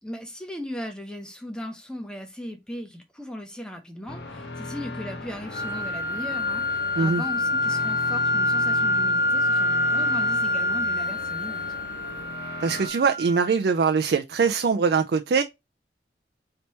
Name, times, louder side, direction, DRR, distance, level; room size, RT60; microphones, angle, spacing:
voice 1, 0.0-11.6, equal, 5° left, 0.7 m, -38 dB
sound 1, 4.1-12.9, left 2 dB, 65° left, 0.7 m, -38 dB
sound 2, 5.5-13.5, left 1 dB, 45° left, 1.7 m, -26 dB
voice 2, 12.6-15.4, right 5 dB, 60° right, 0.4 m, -22 dB
3.3 x 2.9 x 4.1 m
head